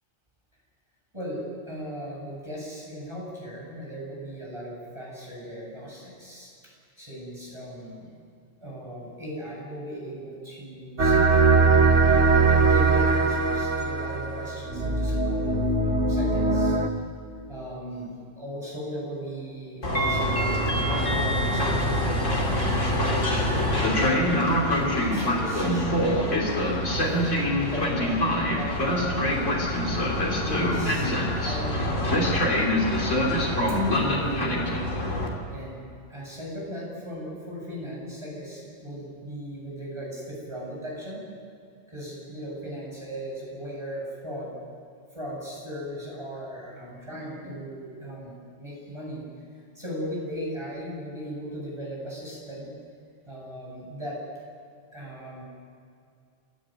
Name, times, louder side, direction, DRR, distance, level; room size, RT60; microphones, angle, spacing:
voice 1, 1.1-8.1 8.6-11.4 12.0-16.8 17.5-22.1 22.9-24.4 24.8-26.1 26.5-27.1 27.6-29.7 30.4-32.7 33.9-34.7 35.5-41.3 41.9-44.6 45.1-48.3 48.6-49.2 49.7-52.7 53.3-54.2 54.9-55.4, equal, 25° right, -4 dB, 8.1 m, -37 dB
sound 1, 11.0-16.9, right 3 dB, 75° right, 1.8 m, -21 dB
Train, 19.8-35.3, left 1 dB, 85° left, 3.6 m, -24 dB
29.0 x 14.5 x 9.3 m, 2.3 s
omnidirectional pair, 1.2 m